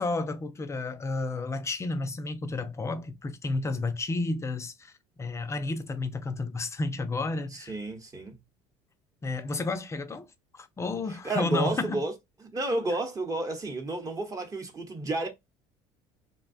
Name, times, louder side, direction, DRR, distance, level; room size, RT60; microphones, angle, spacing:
voice 1, 0.0-4.9 5.2-7.7 9.2-10.3 10.5-12.0, left 3 dB, 20° left, 0.5 m, -31 dB
voice 2, 7.5-8.4 11.2-12.1 12.5-15.3, right 2 dB, 25° right, 0.9 m, -31 dB
2.6 x 2.2 x 2.5 m
supercardioid pair, 85°, 13 cm